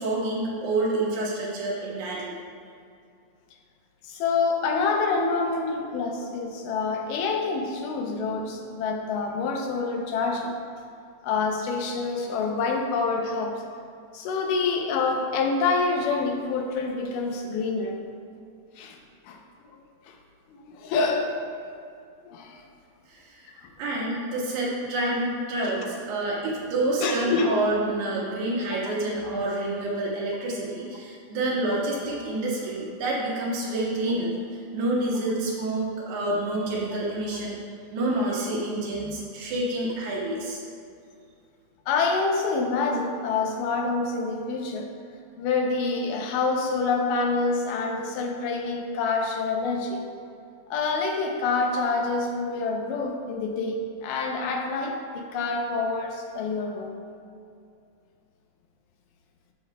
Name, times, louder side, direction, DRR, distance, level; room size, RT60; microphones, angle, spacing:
voice 1, 0.0-2.3 23.1-23.4 23.8-37.6 37.9-40.6, right 2 dB, 90° right, -5 dB, 3.7 m, -28 dB
voice 2, 4.0-10.5 11.2-13.6 14.1-18.0 18.8-19.0 19.3-19.4 19.7-19.8 20.1-20.2 20.5-21.4 22.3-22.6 27.0-27.6 41.9-44.9 45.4-50.0 50.7-57.0, left 4 dB, 85° left, 2 dB, 1.9 m, -27 dB
15.0 x 6.5 x 2.2 m, 2.4 s
omnidirectional pair, 4.6 m